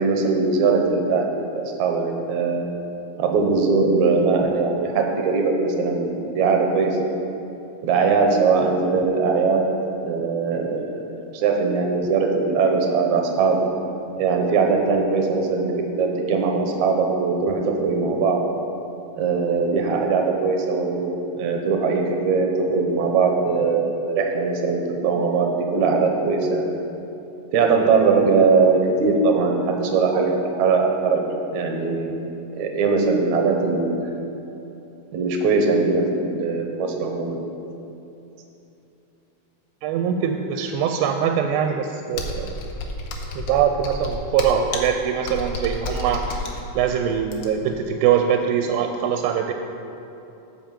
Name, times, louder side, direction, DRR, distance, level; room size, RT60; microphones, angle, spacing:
voice 1, 0.0-2.7 3.2-7.1 7.8-9.7 10.0-10.8 11.3-13.6 14.2-18.4 19.2-26.7 27.5-31.2 31.5-32.3 32.6-34.1 35.1-37.4, right 4 dB, 70° right, 2 dB, 2.0 m, -21 dB
voice 2, 39.8-42.5 43.4-46.5 46.8-49.5, right 8 dB, 90° right, 5 dB, 2.4 m, -22 dB
Computer keyboard, 42.1-47.8, left 2 dB, 75° left, 2.4 m, -31 dB
8.8 x 5.8 x 7.4 m, 2.9 s
omnidirectional pair, 4.1 m